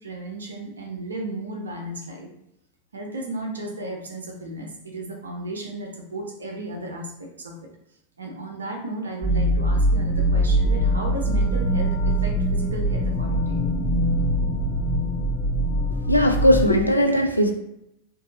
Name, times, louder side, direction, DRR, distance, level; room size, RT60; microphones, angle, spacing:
voice 1, 0.0-2.3 2.9-7.7 8.2-13.7, right 1 dB, 70° right, 2 dB, 0.6 m, -34 dB
sound 1, 9.2-16.7, equal, ahead, 0.8 m, -22 dB
voice 2, 16.1-17.5, equal, 85° left, 4 dB, 0.4 m, -18 dB
2.6 x 2.6 x 3.8 m, 0.78 s
figure-of-eight pair, 90°, 0 cm